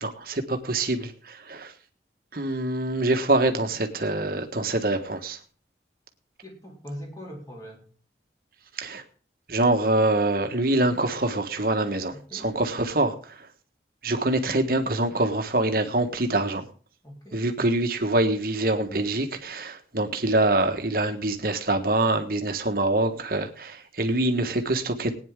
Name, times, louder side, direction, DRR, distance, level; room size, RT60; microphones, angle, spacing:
voice 1, 0.0-1.7 2.3-5.4 8.7-9.0 9.5-13.5 14.0-16.6 17.3-25.1, right 2 dB, 55° right, 1.5 m, -25 dB
voice 2, 6.4-7.8 12.1-12.5 17.0-17.4, equal, 20° left, 3.6 m, -41 dB
19.0 x 9.6 x 3.7 m
head